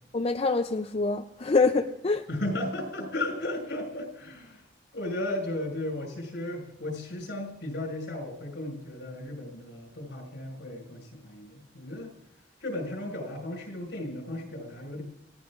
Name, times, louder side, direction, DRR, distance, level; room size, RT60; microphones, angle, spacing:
voice 1, 0.1-2.2, left 3 dB, 35° left, 6 dB, 0.5 m, -25 dB
voice 2, 2.3-4.6 4.9-12.1 12.6-15.0, left 1 dB, 75° left, 1 dB, 5.8 m, -35 dB
28.0 x 16.5 x 2.5 m, 0.93 s
head